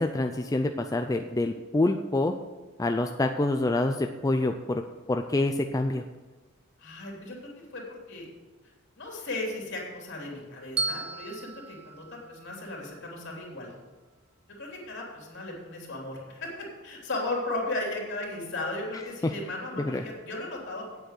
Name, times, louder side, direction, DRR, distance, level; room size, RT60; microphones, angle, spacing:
voice 1, 0.0-2.3 2.8-4.8 5.1-6.0 19.2-19.3 19.8-20.0, left 2 dB, 15° left, 5 dB, 0.4 m, -26 dB
voice 2, 6.8-8.3 8.9-13.7 14.6-20.9, left 2 dB, 60° left, -1 dB, 3.3 m, -36 dB
Bell, 10.8-12.9, right 3 dB, 30° right, 0.8 m, -35 dB
9.0 x 7.9 x 6.7 m, 1.3 s
head